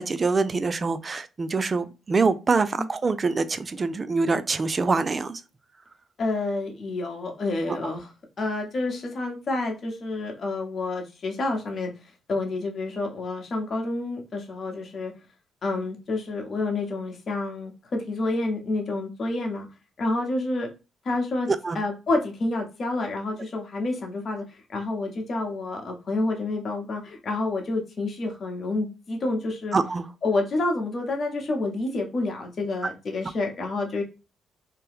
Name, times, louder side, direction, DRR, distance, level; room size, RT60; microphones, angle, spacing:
voice 1, 0.0-5.4 7.7-7.8 21.5-21.8 29.7-30.0, right 4 dB, 30° right, 0.3 m, -25 dB
voice 2, 6.2-8.1 8.4-11.9 12.3-15.1 15.6-19.7 20.0-20.7 21.0-21.5 21.7-29.8 30.2-34.0, left 2 dB, 45° left, 1.0 m, -28 dB
2.8 x 2.2 x 3.4 m
cardioid pair, 90°, 0 cm